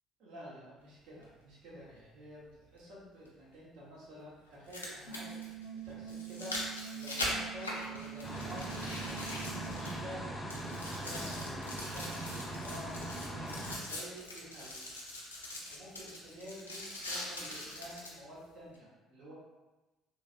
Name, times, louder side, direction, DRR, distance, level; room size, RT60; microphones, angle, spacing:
voice 1, 0.2-5.4 5.8-10.3 10.6-14.9 15.7-19.3, equal, 60° right, -6 dB, 0.9 m, -50 dB
sound 1, 1.2-1.3 3.3-3.4 4.5-10.2 10.5-18.2 18.8-18.9, left 1 dB, 85° left, 0.4 m, -42 dB
sound 2, 5.1-10.0, right 10 dB, 60° left, 0.9 m, -45 dB
sound 3, 8.2-13.8, right 1 dB, 20° left, 0.6 m, -40 dB
3.1 x 2.2 x 2.6 m, 1.1 s
figure-of-eight pair, 50°, 0 cm